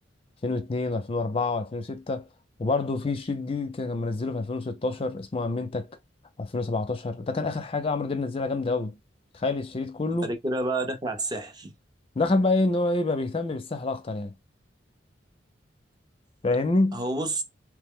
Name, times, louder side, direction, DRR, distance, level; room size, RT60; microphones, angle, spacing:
voice 1, 0.4-2.2 2.6-5.9 6.4-9.0 9.3-10.3 12.2-14.3 16.4-17.0, left 3 dB, 30° left, 0.4 m, -27 dB
voice 2, 10.2-11.7 16.9-17.4, right 2 dB, 25° right, 0.5 m, -29 dB
3.1 x 2.1 x 3.5 m
head